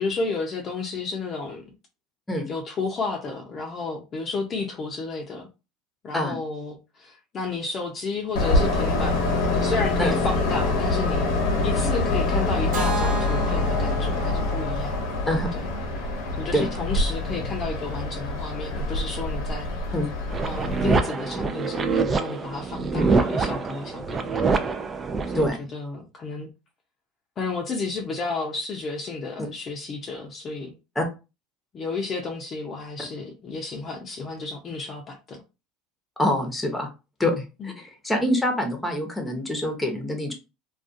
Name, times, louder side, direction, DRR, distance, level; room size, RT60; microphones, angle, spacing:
voice 1, 0.0-1.7 2.5-5.5 6.0-11.3 11.6-15.0 15.5-15.7 16.4-19.7 20.4-24.6 25.3-26.5 27.4-30.7 31.7-35.4 37.6-37.7, left 3 dB, 35° left, 0.6 m, -32 dB
Train, 8.3-21.0, left 2 dB, 75° left, 0.8 m, -25 dB
Keyboard (musical), 12.7-16.6, right 3 dB, 70° right, 0.9 m, -34 dB
sound 1, 20.3-25.5, right 4 dB, 25° right, 0.4 m, -25 dB
voice 2, 36.2-36.9 37.2-40.3, left 1 dB, 10° left, 0.8 m, -25 dB
2.4 x 2.3 x 2.6 m
supercardioid pair, 105°, 0 cm